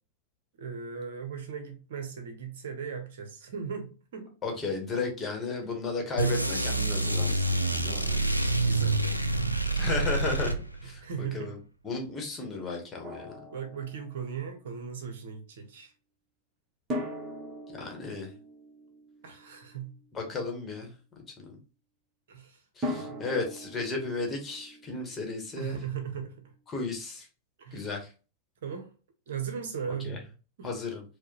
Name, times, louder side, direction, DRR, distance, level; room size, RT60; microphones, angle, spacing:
voice 1, 0.6-4.3 8.7-9.3 10.8-11.5 13.5-15.9 19.2-19.9 22.3-22.6 22.9-23.2 25.6-26.4 27.6-27.9 28.6-28.9 29.3-30.2 30.6-30.7, right 7 dB, 60° right, 0.8 m, -38 dB
voice 2, 4.4-8.2 9.7-11.6 11.8-13.3 17.8-18.3 20.1-20.9 21.4-21.5 22.8-25.8 26.7-27.3 27.7-28.1 30.0-30.2 30.6-31.0, left 3 dB, 20° left, 1.2 m, -34 dB
sound 1, 6.2-11.0, right 2 dB, 90° right, 0.3 m, -27 dB
Drum, 13.0-14.4 16.9-19.9 22.8-25.7, left 1 dB, 25° right, 1.1 m, -40 dB
4.7 x 2.2 x 2.9 m
figure-of-eight pair, 90°, 0 cm